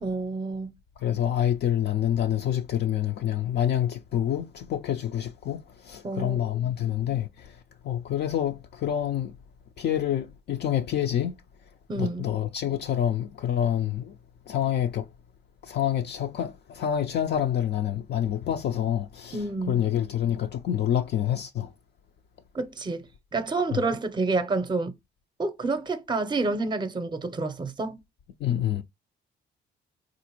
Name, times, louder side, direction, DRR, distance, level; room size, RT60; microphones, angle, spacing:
voice 1, 0.0-0.7 6.0-6.7 11.9-12.3 19.3-19.8 22.5-23.1 23.3-25.0 25.4-28.0, right 3 dB, 20° right, 0.6 m, -29 dB
voice 2, 1.0-9.4 9.8-11.4 11.9-14.2 14.5-15.1 15.6-21.7 23.7-23.8 28.4-28.8, left 10 dB, 60° left, 0.4 m, -27 dB
3.8 x 2.5 x 2.9 m
cardioid pair, 90°, 20 cm